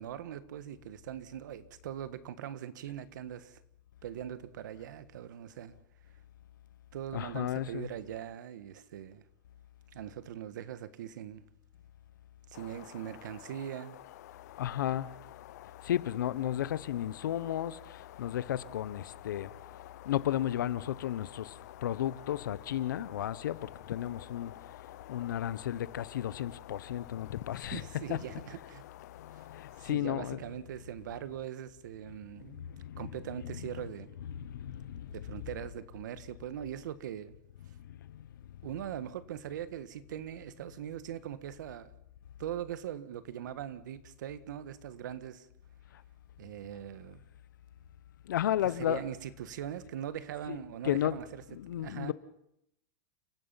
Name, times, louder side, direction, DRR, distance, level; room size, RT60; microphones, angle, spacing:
voice 1, 0.0-3.6 4.0-5.7 6.9-9.2 9.9-11.4 12.5-14.0 27.6-28.8 29.3-29.5 29.8-32.7 33.0-34.1 35.1-37.4 38.6-41.9 42.4-45.5 46.4-47.2 48.8-51.4 51.8-52.1, right 10 dB, 75° right, 1.6 m, -41 dB
voice 2, 7.1-7.9 14.6-15.1 15.8-17.8 18.2-19.5 20.1-21.5 21.8-24.5 25.1-28.2 29.5-30.4 32.5-33.1 33.4-33.7 34.2-35.4 48.3-49.0 50.5-50.6 50.8-51.2 51.5-52.1, left 11 dB, 90° left, 1.1 m, -33 dB
sound 1, 12.5-29.9, left 14 dB, 60° left, 0.9 m, -49 dB
30.0 x 16.0 x 5.9 m
supercardioid pair, 165°, 10 cm